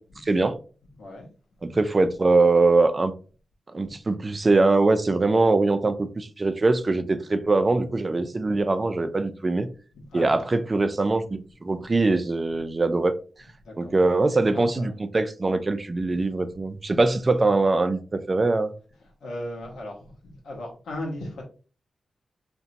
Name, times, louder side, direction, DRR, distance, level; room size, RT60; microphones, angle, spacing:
voice 1, 0.2-0.5 1.6-3.1 3.7-9.7 10.1-13.1 13.8-18.7, right 3 dB, 40° right, 0.3 m, -22 dB
voice 2, 8.2-8.6 9.9-10.4 11.8-12.0 13.6-15.0 16.1-16.5 19.0-21.4, left 1 dB, 90° left, 0.7 m, -38 dB
2.8 x 2.2 x 2.5 m
supercardioid pair, 45°, 0 cm